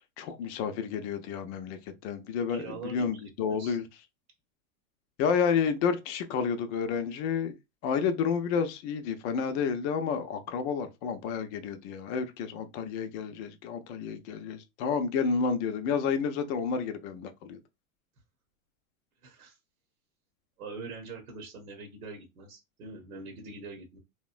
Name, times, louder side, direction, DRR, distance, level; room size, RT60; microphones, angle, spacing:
voice 1, 0.2-3.8 5.2-7.6 7.8-17.6, left 6 dB, 55° left, 0.6 m, -30 dB
voice 2, 2.5-3.8 19.2-19.6 20.6-24.0, right 3 dB, 80° right, 0.9 m, -43 dB
2.9 x 2.1 x 2.4 m
hypercardioid pair, 105°, 43 cm